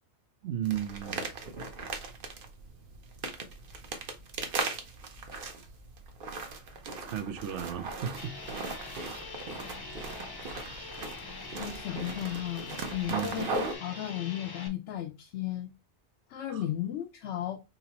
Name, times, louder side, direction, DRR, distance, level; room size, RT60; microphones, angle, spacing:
voice 1, 0.4-1.3 7.0-8.3 13.1-13.4 16.5-16.6, right 10 dB, 90° right, 1.0 m, -34 dB
sound 1, 0.6-13.7, right 3 dB, 55° right, 0.9 m, -38 dB
sound 2, 8.2-14.7, left 3 dB, 25° left, 0.5 m, -43 dB
voice 2, 11.5-15.7 16.3-17.6, left 12 dB, 90° left, 0.9 m, -35 dB
5.3 x 2.9 x 2.9 m
omnidirectional pair, 1.1 m